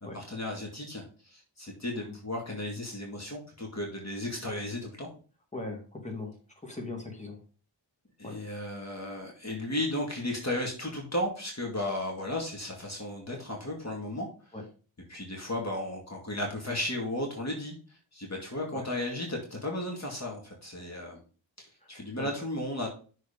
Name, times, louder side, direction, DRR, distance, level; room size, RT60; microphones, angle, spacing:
voice 1, 0.0-5.1 8.2-14.3 15.1-17.7 18.1-21.2 21.6-22.9, left 1 dB, 35° left, 0 dB, 2.2 m, -34 dB
voice 2, 5.5-6.3 6.6-7.4 8.2-8.3 14.5-14.6 18.7-18.8 22.2-22.3, left 2 dB, 15° left, 1 dB, 2.4 m, -39 dB
6.5 x 4.6 x 5.2 m, 0.38 s
wide cardioid pair, 85°, 47 cm